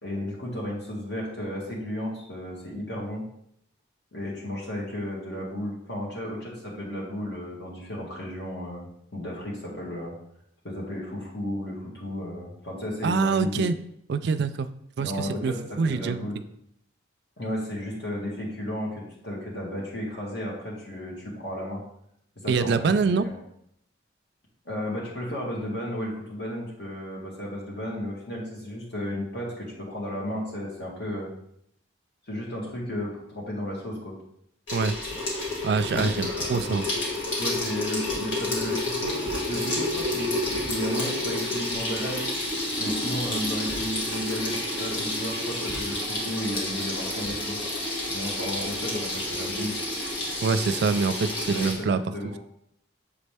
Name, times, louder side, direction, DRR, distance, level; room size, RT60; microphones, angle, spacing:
voice 1, 0.0-3.2 4.1-10.1 10.6-13.7 15.0-16.4 17.4-21.8 22.4-23.4 24.7-31.3 32.3-34.2 35.1-35.2 35.9-36.8 37.4-39.1 39.5-42.2 42.8-47.6 48.1-49.7 51.5-52.4, left 1 dB, 60° left, -3 dB, 1.9 m, -33 dB
voice 2, 13.0-13.7 14.1-14.7 15.0-16.3 22.5-23.3 34.7-34.9 35.6-36.9 50.4-52.0, right 4 dB, 60° right, 10 dB, 0.3 m, -25 dB
Water tap faucet / Sink (filling or washing), 34.7-51.7, left 1 dB, 75° left, 1.9 m, -30 dB
7.0 x 4.1 x 3.4 m, 0.72 s
head